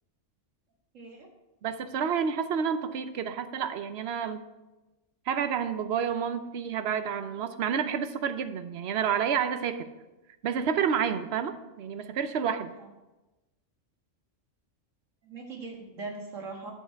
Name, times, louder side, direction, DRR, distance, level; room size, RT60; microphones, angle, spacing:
voice 1, 0.9-1.3 12.7-12.9 15.2-16.7, right 3 dB, 85° right, 0 dB, 2.1 m, -40 dB
voice 2, 1.6-4.4 5.3-9.9 10.4-12.7, right 7 dB, 60° right, 10 dB, 0.9 m, -29 dB
9.3 x 8.1 x 4.5 m, 1.0 s
omnidirectional pair, 1.3 m